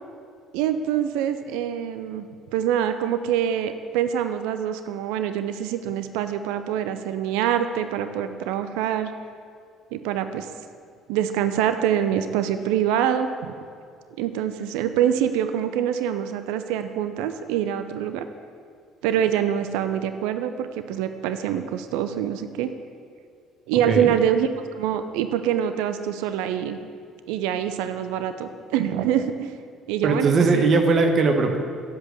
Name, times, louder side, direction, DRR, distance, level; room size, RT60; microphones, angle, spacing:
voice 1, 0.5-2.3 2.5-9.1 9.9-10.5 11.1-13.5 14.2-18.3 19.0-22.7 23.7-24.5 24.7-26.8 27.3-29.5 29.9-30.6, right 9 dB, 65° right, 9 dB, 0.6 m, -25 dB
voice 2, 30.0-31.6, right 4 dB, 45° right, 4 dB, 1.2 m, -19 dB
8.9 x 7.9 x 8.2 m, 2.3 s
figure-of-eight pair, 50°, 0 cm